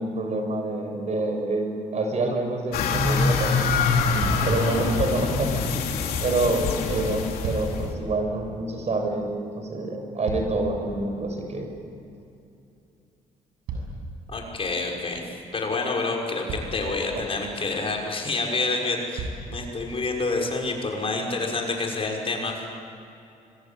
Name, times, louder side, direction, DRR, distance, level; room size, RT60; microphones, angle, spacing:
voice 1, 0.0-1.7 1.9-9.3 9.6-11.7 17.1-17.2, right 2 dB, 50° right, 4 dB, 6.6 m, -27 dB
sound 1, 2.7-7.9, left 4 dB, 85° left, 3.5 m, -25 dB
sound 2, 4.2-4.7 7.1-7.9 9.8-10.9 13.6-14.6 15.8-15.9 16.4-16.9 18.3-18.4 19.1-19.6 20.4-20.5, right 3 dB, 85° right, 7.4 m, -34 dB
voice 2, 14.3-15.2 15.5-22.6, left 3 dB, 40° left, 0 dB, 6.2 m, -28 dB
25.5 x 23.0 x 8.9 m, 2.7 s
cardioid pair, 80°, 15 cm